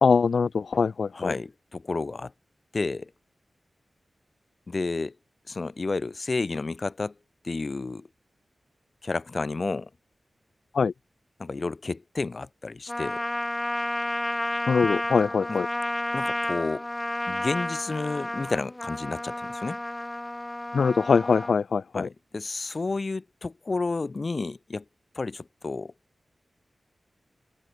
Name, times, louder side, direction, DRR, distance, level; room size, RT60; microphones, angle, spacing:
voice 1, 0.0-1.4 10.7-10.9 14.7-15.7 20.7-22.1, left 5 dB, 80° left, 1.8 m, -22 dB
voice 2, 1.1-2.3 2.7-3.1 4.7-5.2 5.5-7.1 7.4-8.1 9.0-9.9 11.4-13.2 15.5-15.6 16.1-16.9 17.3-19.8 21.9-24.8 25.1-25.9, left 3 dB, 45° left, 7.2 m, -31 dB
Trumpet, 12.9-21.6, left 1 dB, 20° left, 4.4 m, -31 dB
open air
wide cardioid pair, 75°, 0 cm